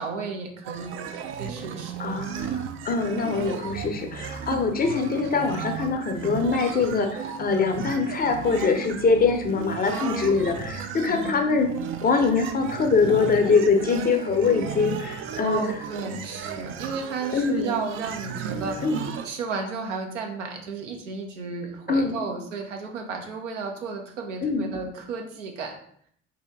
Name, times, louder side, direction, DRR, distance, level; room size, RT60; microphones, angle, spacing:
voice 1, 0.0-1.9 9.9-10.5 10.9-11.4 15.4-25.8, right 4 dB, 75° right, 2 dB, 0.7 m, -33 dB
sound 1, 0.6-19.3, right 7 dB, 35° right, 0.4 m, -35 dB
voice 2, 2.0-2.5 2.8-11.7 12.0-15.6 17.3-17.7 18.8-19.0 21.9-22.2 24.4-24.6, left 4 dB, 25° left, 4 dB, 0.5 m, -23 dB
3.4 x 2.8 x 3.4 m, 0.64 s
figure-of-eight pair, 50°, 36 cm